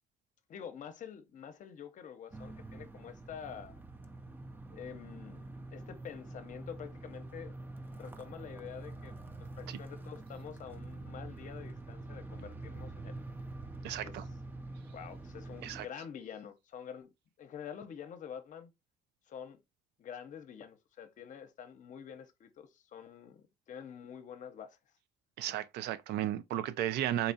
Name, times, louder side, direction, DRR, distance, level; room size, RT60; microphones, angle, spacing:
voice 1, 0.5-3.8 4.7-7.5 7.9-13.2 14.0-14.3 14.9-17.1 17.4-18.7 19.3-19.6 20.0-24.8, left 8 dB, 50° left, 0.7 m, -47 dB
sound 1, 2.3-15.8, right 2 dB, 10° right, 0.4 m, -46 dB
voice 2, 13.8-14.2 15.6-15.8 25.4-27.3, right 12 dB, 80° right, 0.5 m, -34 dB
4.0 x 2.4 x 2.7 m
cardioid pair, 110°, 17 cm